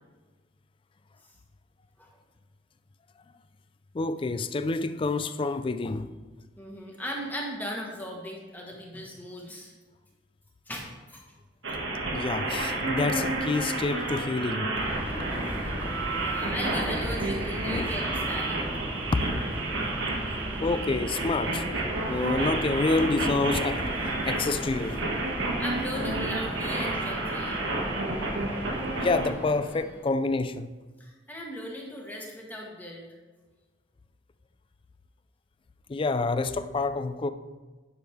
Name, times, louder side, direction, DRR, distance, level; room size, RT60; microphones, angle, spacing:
voice 1, 3.9-6.1 12.1-14.7 15.3-15.7 16.1-16.2 17.6-18.0 19.1-19.3 20.6-25.0 29.0-30.7 35.9-37.3, left 3 dB, 25° left, 0.3 m, -28 dB
voice 2, 6.6-9.7 10.7-11.2 16.2-18.7 25.6-27.6 31.0-33.1, equal, 10° left, 1.4 m, -37 dB
sound 1, 11.6-29.3, right 2 dB, 75° right, 1.4 m, -31 dB
Subway metro underground, 14.7-30.1, equal, 10° right, 0.9 m, -37 dB
10.0 x 6.1 x 3.5 m
head